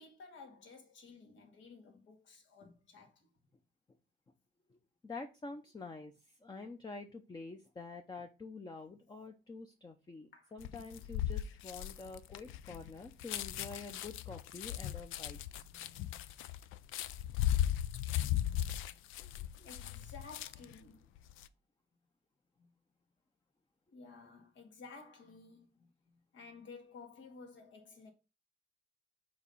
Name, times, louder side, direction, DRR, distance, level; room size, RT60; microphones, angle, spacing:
voice 1, 0.0-3.3 10.3-10.6 15.5-16.2 18.2-19.0 19.6-21.1 22.6-22.7 23.9-28.1, left 4 dB, 70° left, 1.7 m, -55 dB
voice 2, 5.0-6.1 6.4-15.4 19.6-19.7, left 3 dB, 20° left, 0.7 m, -47 dB
sound 1, 10.6-20.8 21.2-21.5, left 12 dB, 90° left, 0.4 m, -37 dB
4.8 x 4.1 x 5.5 m
cardioid pair, 90°, 20 cm